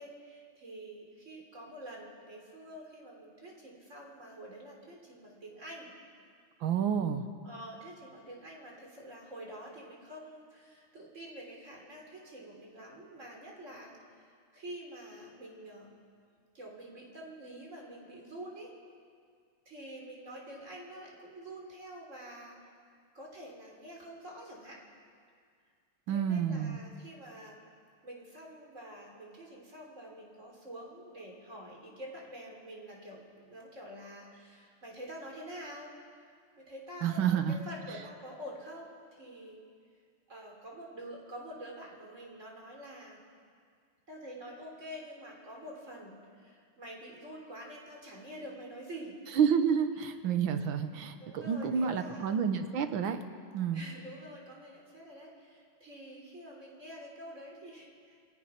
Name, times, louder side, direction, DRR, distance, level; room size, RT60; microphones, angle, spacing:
voice 1, 0.0-5.9 7.4-14.2 14.5-15.9 16.5-18.7 19.7-22.6 23.1-24.8 26.1-27.6 28.0-35.9 36.6-39.6 40.3-43.2 44.1-49.2 51.2-52.4 53.7-58.2, right 1 dB, 35° right, -1 dB, 3.9 m, -47 dB
voice 2, 6.6-7.3 26.1-26.8 37.0-37.5 49.4-53.2 53.5-53.8, right 7 dB, 65° right, 8 dB, 1.7 m, -29 dB
27.5 x 17.0 x 5.9 m, 2.1 s
omnidirectional pair, 2.4 m